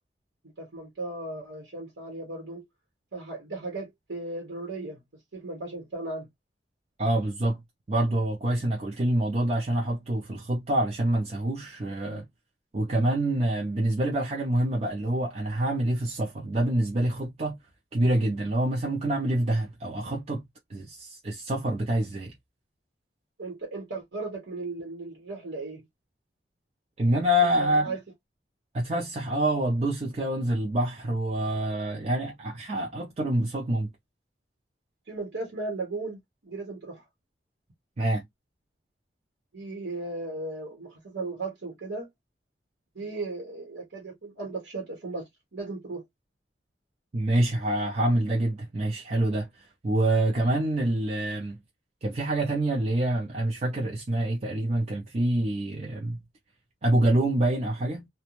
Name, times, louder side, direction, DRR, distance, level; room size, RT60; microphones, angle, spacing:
voice 1, 0.6-2.6 3.1-5.0 5.3-6.3 23.4-25.9 27.4-28.0 35.1-36.2 36.4-37.0 39.5-42.1 42.9-46.0, right 3 dB, 85° right, 1.0 m, -36 dB
voice 2, 7.0-7.6 7.9-12.3 12.7-17.5 17.9-20.4 20.7-22.3 27.0-27.9 28.7-33.9 38.0-38.2 47.1-51.6 52.0-56.2 56.8-58.1, right 1 dB, 35° right, 0.5 m, -26 dB
2.4 x 2.2 x 2.9 m
head